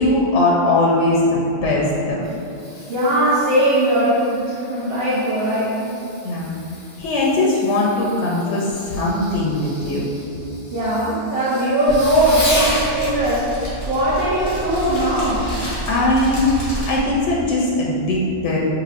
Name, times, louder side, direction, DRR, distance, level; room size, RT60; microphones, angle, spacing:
voice 1, 0.0-2.3 6.2-6.5 7.0-10.1 15.9-18.6, left 2 dB, 85° left, -4 dB, 0.9 m, -20 dB
Fireworks, 2.0-13.0 15.0-15.2 15.8-15.9, left 1 dB, 40° left, 0.9 m, -34 dB
voice 2, 2.9-5.9 10.7-13.5 13.8-15.4, right 1 dB, 60° right, -10 dB, 1.0 m, -19 dB
Fire, 11.9-17.0, equal, 65° left, 1.6 m, -29 dB
5.8 x 3.0 x 2.5 m, 2.7 s
omnidirectional pair, 1.2 m